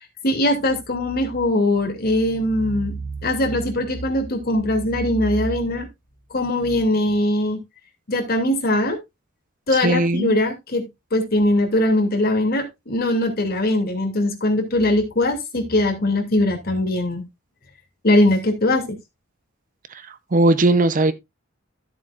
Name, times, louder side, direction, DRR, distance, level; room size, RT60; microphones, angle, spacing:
voice 1, 0.2-5.9 6.3-7.6 8.1-9.0 9.7-17.2 18.0-19.0, left 1 dB, 50° left, 2.7 m, -21 dB
voice 2, 9.8-10.3 20.3-21.1, right 2 dB, 40° right, 0.7 m, -17 dB
13.5 x 7.5 x 2.4 m
head